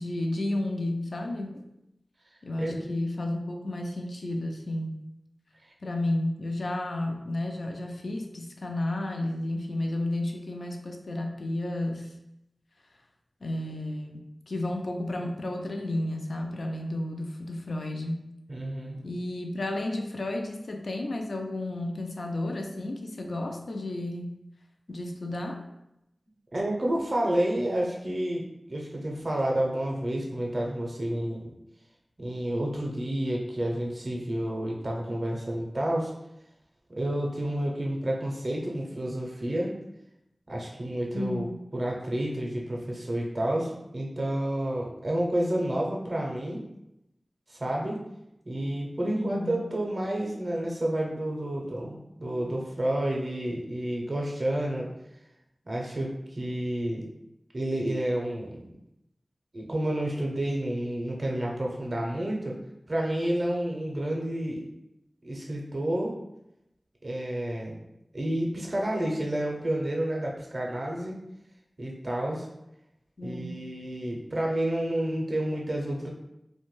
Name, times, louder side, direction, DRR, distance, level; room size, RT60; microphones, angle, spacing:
voice 1, 0.0-1.6 2.4-5.0 5.8-12.1 13.4-18.3 19.0-24.3 24.9-25.6 41.1-41.6 49.0-49.6 73.2-73.5, left 1 dB, 80° left, 3 dB, 0.3 m, -32 dB
voice 2, 18.5-19.0 26.5-31.5 32.2-36.1 36.9-39.7 40.5-46.7 47.5-48.0 48.5-54.9 55.7-57.1 57.5-58.7 59.5-62.6 62.9-64.6 65.2-66.2 67.0-67.8 68.1-71.2 71.8-72.5 73.2-76.1, right 1 dB, 50° right, -1 dB, 0.5 m, -30 dB
2.6 x 2.1 x 3.0 m, 0.85 s
wide cardioid pair, 65°, 0 cm